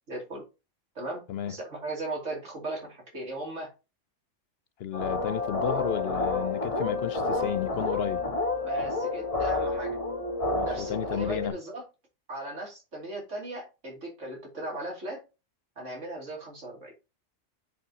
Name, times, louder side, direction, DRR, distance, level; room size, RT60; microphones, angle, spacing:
voice 1, 0.1-0.4 0.9-3.7 8.6-10.0 10.6-11.8 12.3-15.2 15.8-16.9, right 2 dB, 75° right, 3.0 m, -37 dB
voice 2, 4.8-8.3 10.5-11.6, left 9 dB, 65° left, 0.7 m, -33 dB
sound 1, 4.9-11.5, left 3 dB, 30° left, 1.5 m, -29 dB
9.2 x 5.2 x 2.8 m
omnidirectional pair, 1.3 m